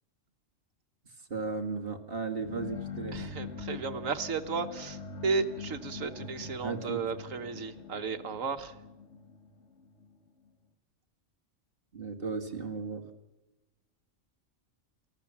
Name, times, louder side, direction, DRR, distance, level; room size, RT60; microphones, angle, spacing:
voice 1, 1.3-3.2 6.6-7.0 11.9-13.0, right 4 dB, 45° right, 4 dB, 2.3 m, -35 dB
sound 1, 2.4-10.2, left 5 dB, 60° left, 1.9 m, -43 dB
voice 2, 3.1-8.8, right 4 dB, 80° right, 8 dB, 1.7 m, -34 dB
28.5 x 14.5 x 7.3 m, 1.1 s
omnidirectional pair, 1.3 m